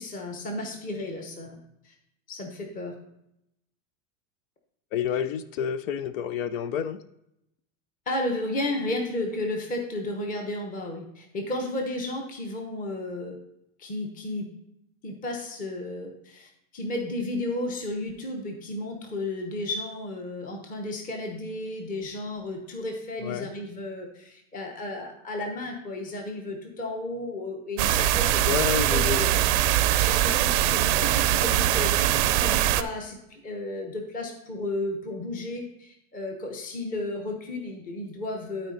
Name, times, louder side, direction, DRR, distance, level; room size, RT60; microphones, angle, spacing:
voice 1, 0.0-1.6 1.8-1.9 2.3-2.9 8.1-13.4 13.8-14.5 15.0-29.3 29.9-38.7, left 2 dB, 20° left, 2 dB, 1.0 m, -33 dB
voice 2, 4.9-7.0 23.2-23.5 28.4-29.4, left 8 dB, 65° left, 14 dB, 0.6 m, -29 dB
sound 1, 27.8-32.8, right 13 dB, 55° right, 0.5 m, -22 dB
12.5 x 4.3 x 3.9 m, 0.82 s
supercardioid pair, 150°, 42 cm